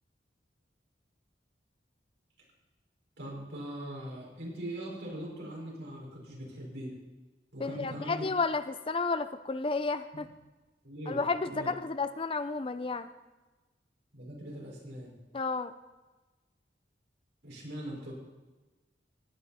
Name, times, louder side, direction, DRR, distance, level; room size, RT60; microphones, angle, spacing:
voice 1, 3.2-6.9 7.5-8.3 10.1-10.2 10.8-11.7 14.1-15.1 17.4-18.1, right 1 dB, 75° right, -3 dB, 5.1 m, -41 dB
voice 2, 7.6-10.3 11.1-13.1 15.3-15.7, left 4 dB, 30° left, 12 dB, 0.5 m, -32 dB
16.5 x 10.0 x 4.2 m, 1.2 s
head